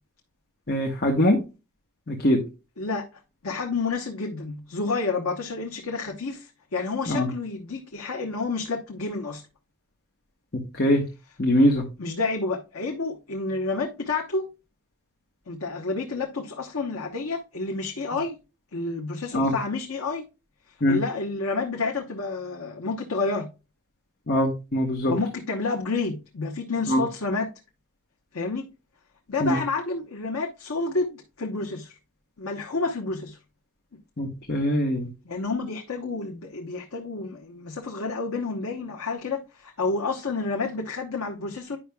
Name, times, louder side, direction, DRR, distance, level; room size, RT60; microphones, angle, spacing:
voice 1, 0.7-1.4 2.1-2.4 7.1-7.3 10.7-11.0 11.4-11.9 19.3-19.5 20.8-21.0 24.3-25.1 26.9-27.0 29.4-29.6 34.2-35.1, equal, 45° left, 1.0 m, -22 dB
voice 2, 3.4-9.4 12.0-14.5 15.5-18.4 18.7-20.3 20.9-23.5 25.1-27.5 28.3-28.7 29.3-32.0 32.4-33.4 35.3-41.8, left 3 dB, 80° left, 1.0 m, -29 dB
9.9 x 5.7 x 2.2 m
head